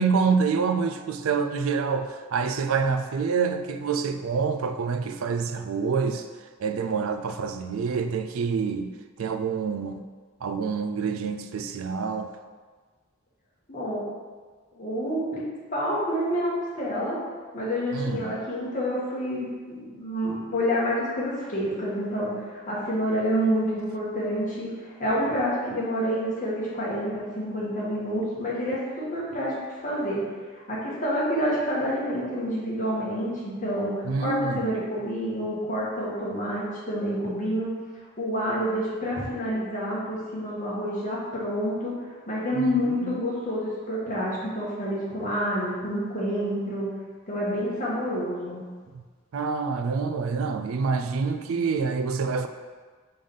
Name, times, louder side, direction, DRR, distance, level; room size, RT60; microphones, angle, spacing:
voice 1, 0.0-6.3 6.6-10.1 10.4-12.3 17.9-18.4 34.0-34.7 42.5-43.2 48.9-49.0 49.3-52.5, right 5 dB, 85° right, 9 dB, 0.4 m, -27 dB
voice 2, 13.7-14.1 14.7-15.4 15.7-17.2 17.5-30.2 30.7-37.7 38.2-41.9 42.3-46.9 47.3-48.6, equal, 40° left, -6 dB, 1.7 m, -28 dB
5.2 x 3.5 x 5.5 m, 1.5 s
head